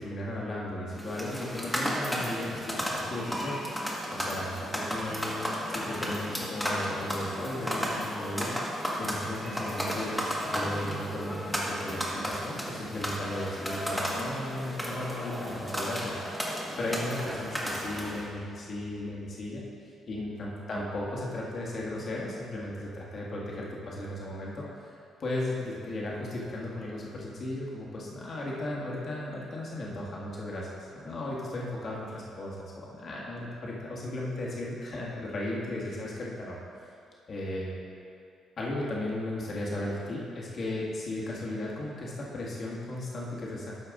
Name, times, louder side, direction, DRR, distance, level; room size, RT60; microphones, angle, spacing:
voice 1, 0.0-3.6 4.1-8.6 9.0-19.6 20.1-36.6 37.3-37.7 38.6-43.7, left 1 dB, 50° left, -4 dB, 1.7 m, -36 dB
sound 1, 0.9-18.3, equal, ahead, 1.5 m, -33 dB
12.5 x 4.6 x 3.7 m, 2.4 s
cardioid pair, 90°, 0 cm